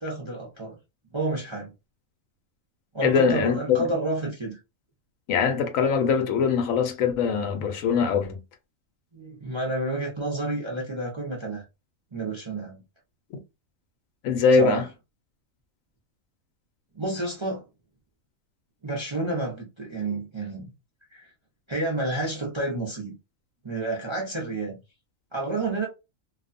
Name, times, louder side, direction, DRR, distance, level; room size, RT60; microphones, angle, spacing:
voice 1, 0.0-0.8 1.1-1.7 2.9-4.6 9.1-11.6 12.1-12.8 14.5-14.8 16.9-17.6 18.8-20.7 21.1-21.3 21.7-23.1 23.6-24.8 25.3-25.9, right 2 dB, 30° right, 0.5 m, -30 dB
voice 2, 3.0-3.8 5.3-8.4 14.2-14.8, left 6 dB, 80° left, 1.0 m, -22 dB
2.5 x 2.2 x 2.5 m
omnidirectional pair, 1.4 m